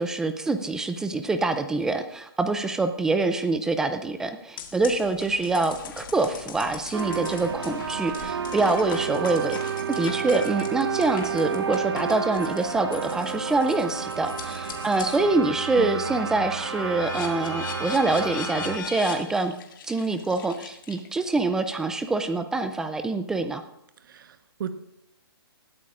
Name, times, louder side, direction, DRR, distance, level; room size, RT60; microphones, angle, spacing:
voice 1, 0.0-9.6 9.9-19.5 19.8-23.6, right 3 dB, 5° right, 9 dB, 0.4 m, -25 dB
sound 1, 4.6-15.3 15.7-21.3, left 6 dB, 55° left, 2.0 m, -40 dB
sound 2, 6.9-18.8, right 6 dB, 85° right, 1.5 m, -31 dB
voice 2, 24.1-24.7, right 8 dB, 55° right, 10 dB, 1.1 m, -35 dB
19.5 x 13.0 x 2.5 m, 0.80 s
hypercardioid pair, 155°, 13 cm